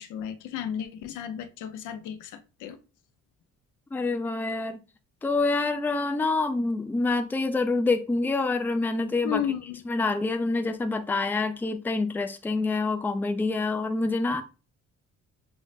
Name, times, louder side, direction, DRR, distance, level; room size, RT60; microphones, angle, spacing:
voice 1, 0.0-2.8 9.2-9.8, left 9 dB, 85° left, 0.5 m, -33 dB
voice 2, 3.9-4.8 5.2-9.4 9.9-14.4, left 3 dB, 5° left, 0.3 m, -26 dB
6.1 x 2.1 x 2.4 m
cardioid pair, 90°, 30 cm